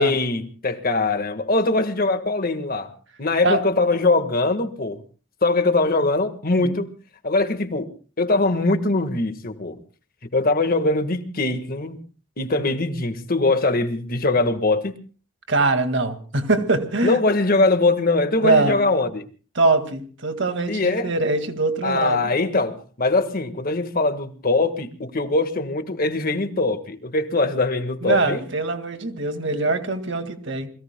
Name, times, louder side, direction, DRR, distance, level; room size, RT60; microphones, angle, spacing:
voice 1, 0.0-2.9 3.2-5.0 5.4-6.9 7.2-7.9 8.2-9.8 10.3-12.0 12.4-14.9 17.0-19.2 20.7-21.1 21.8-28.4, left 2 dB, 45° left, 1.5 m, -22 dB
voice 2, 15.5-17.2 18.3-18.8 19.6-22.3 28.0-30.7, right 2 dB, 65° right, 2.0 m, -22 dB
28.5 x 21.5 x 2.2 m
head